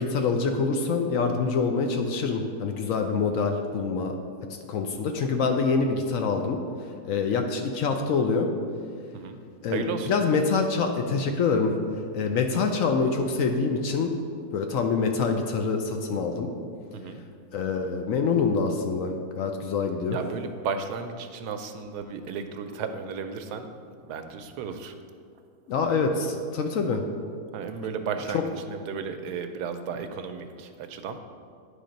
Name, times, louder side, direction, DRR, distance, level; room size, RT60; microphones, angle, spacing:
voice 1, 0.0-4.1 4.7-6.6 7.0-8.5 9.6-11.7 12.1-14.1 14.5-16.5 17.5-20.2 25.7-27.0 28.3-28.4, left 4 dB, 65° left, 4 dB, 0.9 m, -25 dB
voice 2, 9.7-10.1 16.9-17.2 20.1-23.7 24.1-25.0 27.5-31.2, right 6 dB, 85° right, 8 dB, 1.1 m, -34 dB
9.8 x 3.4 x 5.1 m, 2.2 s
omnidirectional pair, 1.7 m